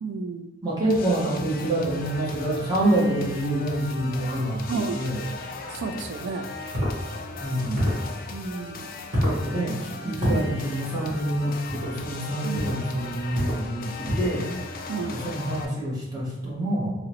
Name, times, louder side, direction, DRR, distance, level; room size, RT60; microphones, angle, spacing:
voice 1, 0.0-0.5 4.7-5.0 5.8-6.4 8.3-8.9 10.3-10.5 12.4-12.7 14.9-15.3, right 4 dB, 65° right, 7 dB, 0.3 m, -31 dB
voice 2, 0.6-5.4 7.4-8.0 9.2-14.6 15.1-17.0, right 1 dB, 20° right, -6 dB, 0.8 m, -27 dB
sound 1, 0.9-15.7, left 3 dB, 50° left, 0.3 m, -38 dB
sound 2, 6.7-7.0 7.7-8.1 9.1-9.4 10.2-10.4 11.7-11.9 12.5-12.8 13.3-13.6 14.0-14.4, equal, 45° right, 1.2 m, -26 dB
3.6 x 2.0 x 2.9 m, 0.96 s
head